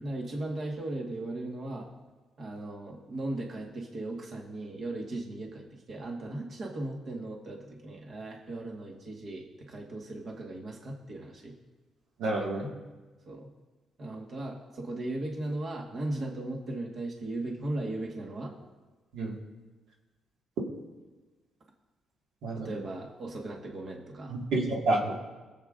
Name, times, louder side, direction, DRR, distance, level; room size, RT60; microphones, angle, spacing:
voice 1, 0.0-1.9 2.4-11.5 13.2-13.5 14.0-18.5 22.5-24.4, right 2 dB, 50° right, 0 dB, 1.5 m, -37 dB
voice 2, 12.2-12.7 19.1-19.4 22.4-22.7 24.3-25.1, right 2 dB, 80° right, -2 dB, 1.8 m, -29 dB
21.5 x 7.5 x 2.5 m, 1.2 s
cardioid pair, 90°, 0 cm